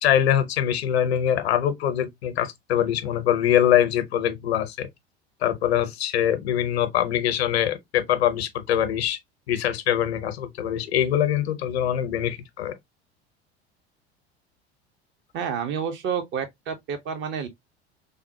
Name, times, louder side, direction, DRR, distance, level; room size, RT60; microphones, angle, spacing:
voice 1, 0.0-4.9 5.4-9.2 9.5-12.7, left 10 dB, 70° left, 0.7 m, -23 dB
voice 2, 15.3-17.5, right 7 dB, 35° right, 0.7 m, -29 dB
3.4 x 2.0 x 2.7 m
figure-of-eight pair, 75°, 33 cm